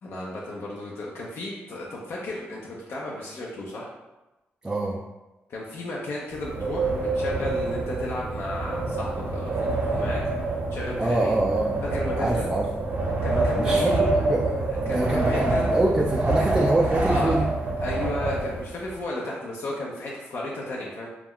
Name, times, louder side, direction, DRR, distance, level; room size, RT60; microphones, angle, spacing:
voice 1, 0.0-3.9 5.5-10.2 10.7-11.3 11.8-12.5 13.2-14.4 14.9-15.6 17.0-17.3 17.8-21.1, left 2 dB, 65° left, -4 dB, 0.5 m, -34 dB
voice 2, 4.6-5.0 11.0-11.7 12.2-12.7 13.6-14.5 14.8-17.4, right 2 dB, 20° right, -3 dB, 0.3 m, -25 dB
Wind, 6.3-18.9, right 2 dB, 50° right, 0.7 m, -26 dB
2.3 x 2.1 x 3.6 m, 1.0 s
cardioid pair, 70°, 4 cm